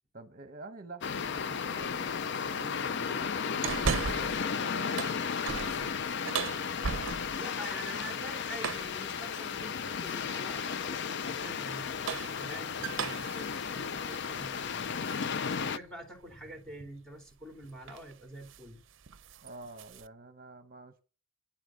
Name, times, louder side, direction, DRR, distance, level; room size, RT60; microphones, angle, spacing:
voice 1, 0.1-5.0 19.4-21.0, right 2 dB, 45° right, 0.9 m, -48 dB
sound 1, 1.0-15.8, left 6 dB, 60° left, 0.5 m, -34 dB
sound 2, 3.6-4.5 4.8-7.5 8.6-9.0 10.0-10.5 11.8-15.2 15.7-15.8 17.3-17.5 17.9-18.1 18.4-18.7 19.0-20.1, right 6 dB, 65° right, 0.6 m, -37 dB
voice 2, 7.4-15.0 15.4-18.8, equal, 5° left, 2.9 m, -46 dB
10.5 x 8.9 x 6.3 m
head